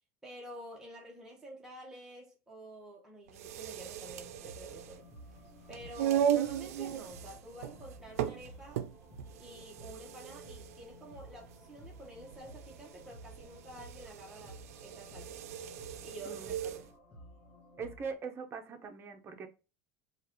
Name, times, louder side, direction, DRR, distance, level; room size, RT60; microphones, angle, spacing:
voice 1, 0.2-5.1 5.7-8.9 9.4-15.4 16.0-16.9, right 1 dB, 5° right, 1.1 m, -50 dB
sound 1, 3.3-16.9, right 10 dB, 90° right, 0.4 m, -37 dB
sound 2, 4.1-18.1, left 1 dB, 20° left, 1.8 m, -54 dB
voice 2, 17.8-19.5, right 5 dB, 30° right, 0.8 m, -41 dB
4.6 x 2.4 x 3.1 m
supercardioid pair, 120°, 8 cm